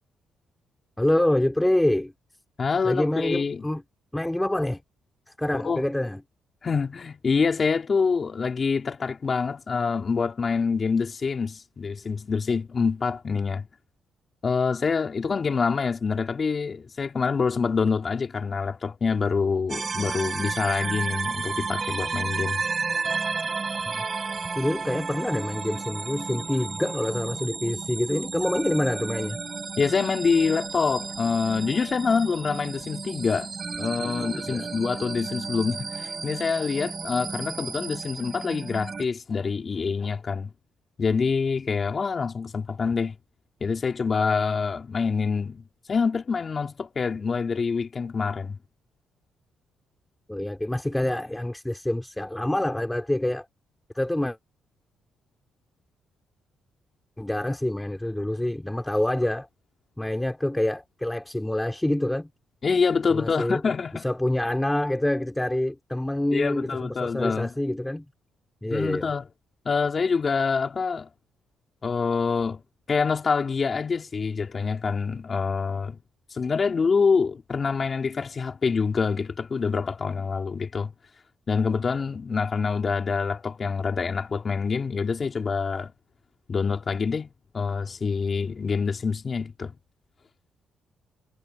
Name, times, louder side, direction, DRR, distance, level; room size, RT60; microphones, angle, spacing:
voice 1, 1.0-2.1 2.8-3.8 4.1-4.8 5.4-6.2 23.9-24.0 24.5-29.4 34.0-34.7 50.3-53.5 53.9-54.4 57.2-59.5 60.0-62.3 63.1-63.6 63.9-68.1 68.6-69.1, left 1 dB, 10° left, 4.1 m, -26 dB
voice 2, 2.6-3.6 5.5-5.9 6.6-13.7 14.4-22.6 29.8-33.5 33.8-40.5 41.0-43.1 43.6-48.6 62.6-64.0 66.3-67.5 68.7-69.3 69.6-71.1 71.8-72.6 72.9-76.0 76.3-80.9 81.5-85.9 86.5-87.3 87.5-89.7, left 5 dB, 40° left, 3.4 m, -26 dB
sound 1, 19.7-39.0, right 4 dB, 35° right, 7.4 m, -32 dB
cardioid pair, 90°, 0 cm